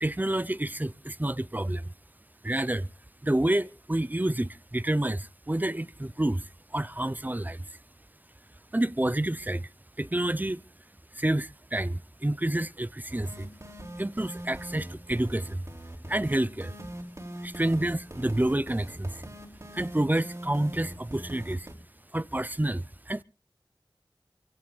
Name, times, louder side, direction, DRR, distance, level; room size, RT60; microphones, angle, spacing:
voice 1, 0.0-1.9 2.4-2.9 3.2-6.4 6.7-7.6 8.7-9.7 10.0-10.6 11.1-13.5 14.0-15.6 16.1-16.8 17.4-19.2 19.7-21.7 22.1-23.2, right 1 dB, 20° right, 0.6 m, -29 dB
sound 1, 13.1-21.7, right 1 dB, 35° right, 3.2 m, -42 dB
27.0 x 16.0 x 2.5 m
wide cardioid pair, 45°, 9 cm